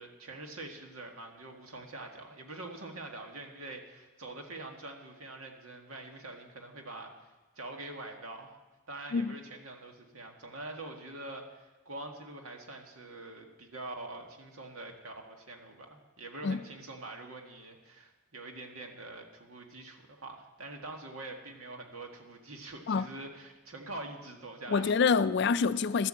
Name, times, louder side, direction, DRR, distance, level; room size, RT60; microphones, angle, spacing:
voice 1, 0.0-8.6 8.9-25.0, right 2 dB, 90° right, 1.8 m, -45 dB
voice 2, 24.7-26.1, left 5 dB, 55° left, 0.4 m, -26 dB
12.5 x 8.2 x 7.6 m
head